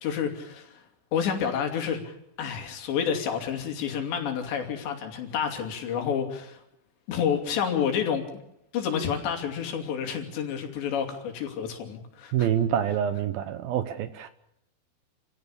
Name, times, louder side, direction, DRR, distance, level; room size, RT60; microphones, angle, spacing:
voice 1, 0.0-0.8 1.1-6.6 7.1-8.2 8.7-12.5, left 7 dB, 80° left, 4 dB, 5.0 m, -29 dB
voice 2, 12.3-14.3, right 9 dB, 70° right, 11 dB, 2.5 m, -26 dB
28.0 x 16.5 x 7.1 m, 0.82 s
omnidirectional pair, 5.0 m